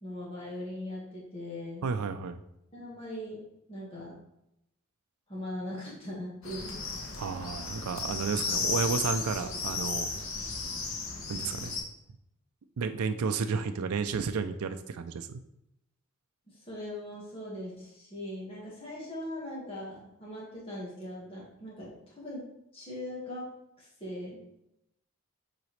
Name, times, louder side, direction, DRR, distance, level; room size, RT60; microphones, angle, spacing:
voice 1, 0.0-1.9 2.7-3.4 3.7-4.2 5.3-7.0 16.5-22.4 22.7-23.5 23.8-24.4, left 1 dB, 25° left, -6 dB, 1.6 m, -40 dB
voice 2, 1.8-2.4 7.2-10.1 11.3-11.7 12.8-15.4, right 5 dB, 90° right, 8 dB, 0.4 m, -32 dB
sound 1, 6.4-11.8, left 4 dB, 75° left, 1.0 m, -34 dB
7.6 x 4.0 x 3.2 m, 0.82 s
head